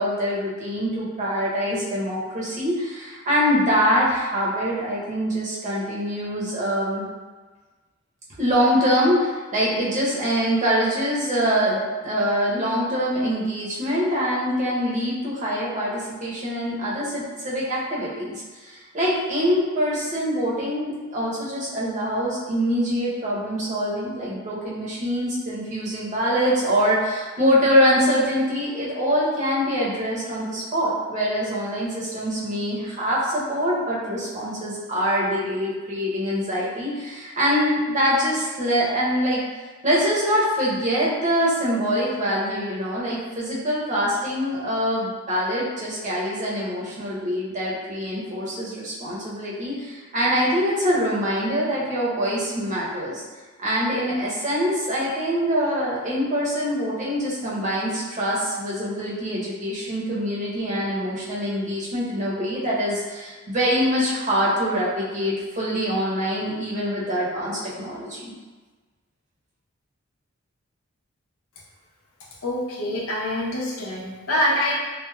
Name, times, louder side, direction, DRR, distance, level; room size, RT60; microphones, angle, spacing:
voice 1, 0.0-7.0 8.4-39.4 39.8-53.2 53.6-68.3, equal, 35° right, -6 dB, 0.7 m, -24 dB
voice 2, 72.4-74.8, left 1 dB, 85° left, -4 dB, 0.7 m, -25 dB
3.2 x 2.0 x 2.2 m, 1.3 s
head